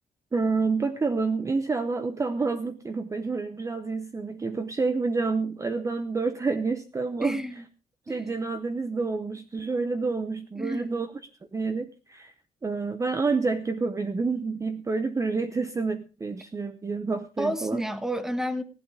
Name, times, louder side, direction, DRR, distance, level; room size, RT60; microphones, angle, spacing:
voice 1, 0.3-7.4 8.1-11.1 11.5-12.3 12.6-17.8, right 4 dB, 20° right, 9 dB, 0.8 m, -28 dB
voice 2, 7.2-7.5 8.1-8.3 10.5-11.0 17.4-18.6, equal, 5° right, 10 dB, 1.2 m, -30 dB
16.5 x 11.5 x 4.9 m, 0.34 s
wide cardioid pair, 175°, 16 cm